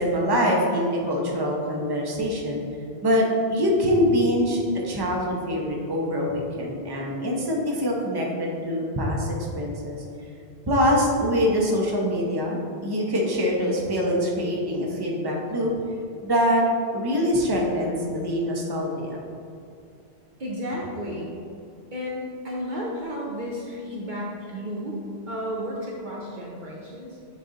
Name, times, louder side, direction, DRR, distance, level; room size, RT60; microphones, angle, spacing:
voice 1, 0.0-2.6 3.0-3.2 3.5-10.0 10.7-15.7 16.2-16.6 16.9-19.2, equal, 25° right, -2 dB, 0.8 m, -24 dB
voice 2, 20.4-21.3 21.9-25.0 25.3-27.2, equal, 50° right, -3 dB, 0.8 m, -32 dB
7.8 x 3.3 x 3.9 m, 2.4 s
omnidirectional pair, 1.1 m